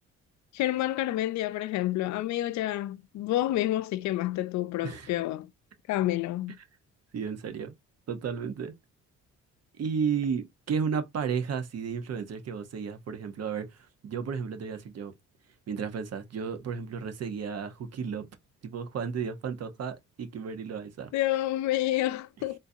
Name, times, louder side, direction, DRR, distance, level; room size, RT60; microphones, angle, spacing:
voice 1, 0.5-5.5 5.9-6.6 21.1-22.6, left 14 dB, 70° left, 0.4 m, -29 dB
voice 2, 7.1-7.7 8.1-8.7 9.8-15.1 15.7-18.3 18.6-21.1, right 6 dB, 55° right, 0.9 m, -33 dB
3.7 x 2.6 x 2.7 m
cardioid pair, 90°, 30 cm